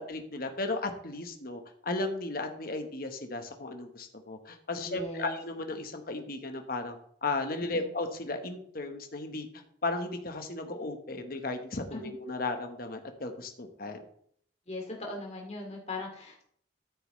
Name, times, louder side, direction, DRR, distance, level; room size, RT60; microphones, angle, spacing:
voice 1, 0.0-9.5 9.8-14.0, left 2 dB, 55° left, 5 dB, 1.2 m, -35 dB
voice 2, 4.8-5.4 7.7-7.9 11.9-12.1 14.7-16.4, left 2 dB, 35° left, 0 dB, 2.4 m, -39 dB
13.5 x 6.8 x 3.2 m, 0.66 s
head